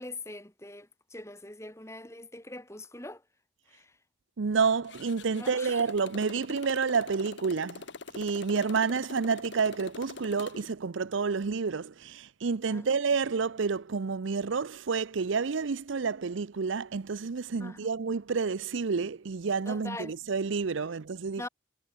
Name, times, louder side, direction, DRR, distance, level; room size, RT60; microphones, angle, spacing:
voice 1, 0.0-3.2 3.7-4.0 5.3-5.8 12.7-13.0 17.6-17.9 19.6-20.2 21.4-21.5, left 2 dB, 15° left, 3.2 m, -43 dB
voice 2, 4.4-7.8 8.1-21.5, right 5 dB, 75° right, 0.6 m, -29 dB
Motorcycle, 4.8-10.7, left 3 dB, 65° left, 1.2 m, -44 dB
head